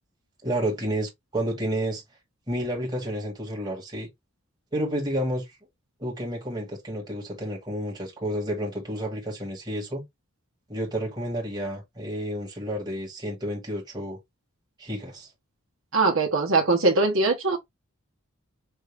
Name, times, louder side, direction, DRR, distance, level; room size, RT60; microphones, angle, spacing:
voice 1, 0.4-2.0 2.5-4.1 4.7-5.4 6.0-10.0 10.7-14.2 14.8-15.3, right 1 dB, 20° right, 1.6 m, -30 dB
voice 2, 15.9-17.6, right 3 dB, 65° right, 1.2 m, -21 dB
5.5 x 2.5 x 3.4 m
head